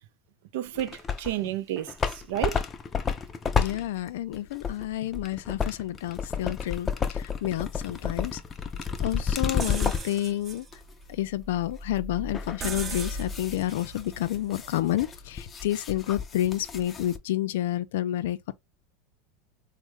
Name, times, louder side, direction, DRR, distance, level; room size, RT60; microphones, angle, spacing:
voice 1, 0.5-2.6, right 12 dB, 75° right, 0.4 m, -31 dB
sound 1, 0.8-1.4 1.8-10.2 10.7-10.8 12.3-17.2, left 6 dB, 25° left, 0.5 m, -31 dB
voice 2, 3.6-8.4 9.0-10.7 11.1-18.5, left 13 dB, 80° left, 0.4 m, -30 dB
sound 2, 9.6-15.4, right 1 dB, 25° right, 0.6 m, -39 dB
3.5 x 2.1 x 3.1 m
supercardioid pair, 125°, 0 cm